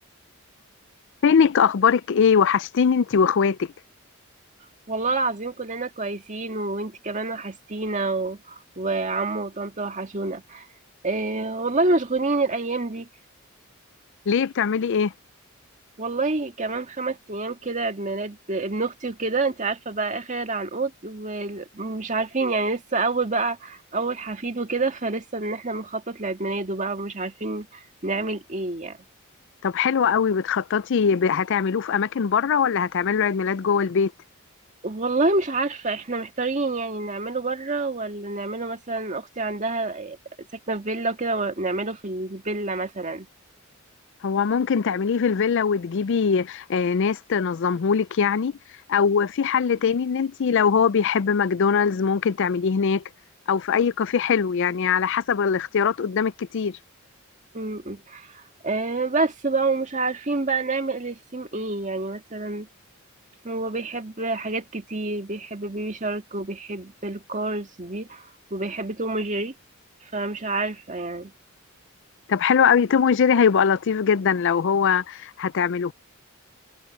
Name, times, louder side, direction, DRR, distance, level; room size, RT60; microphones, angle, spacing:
voice 1, 1.2-3.7 14.3-15.1 29.6-34.1 44.2-48.5 48.9-53.0 53.5-56.8 72.3-75.9, left 6 dB, 60° left, 0.4 m, -21 dB
voice 2, 4.9-10.7 11.0-13.1 16.0-29.0 34.8-40.2 40.7-43.3 57.5-62.7 63.4-69.5 70.1-71.3, right 3 dB, 35° right, 2.0 m, -28 dB
head